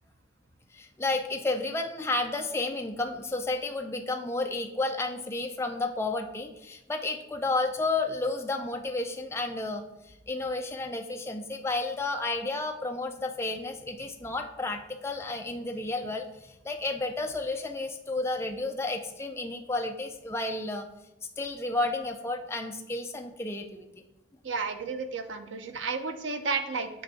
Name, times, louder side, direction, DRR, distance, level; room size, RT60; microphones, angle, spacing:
voice 1, 0.7-20.9 21.4-23.9, left 2 dB, 15° left, 4 dB, 0.4 m, -32 dB
voice 2, 24.4-26.9, right 4 dB, 85° right, 7 dB, 0.7 m, -32 dB
7.6 x 2.7 x 5.5 m, 0.91 s
head